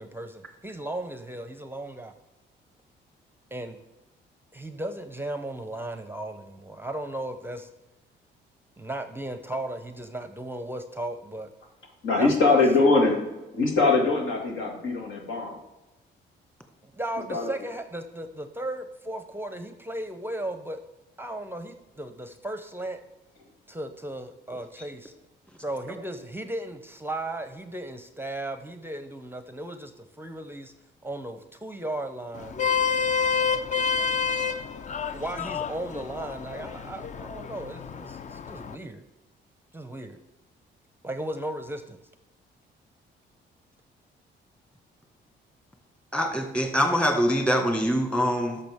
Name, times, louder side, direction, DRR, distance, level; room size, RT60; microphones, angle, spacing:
voice 1, 0.0-2.1 3.5-3.8 4.5-7.7 8.8-11.5 12.2-12.6 16.8-20.8 21.2-23.0 23.7-25.1 25.6-30.7 31.0-32.6 35.1-39.0 39.7-40.2 41.0-42.0, right 1 dB, 10° right, 8 dB, 0.7 m, -35 dB
voice 2, 12.0-13.2 13.5-15.6 17.3-17.5, left 3 dB, 80° left, 0 dB, 2.3 m, -22 dB
Vehicle horn car horn honking, 32.3-38.7, left 6 dB, 40° left, 0.5 m, -29 dB
voice 3, 46.1-48.6, equal, 5° left, 4 dB, 1.6 m, -24 dB
11.5 x 6.8 x 3.6 m, 1.1 s
cardioid pair, 90°, 20 cm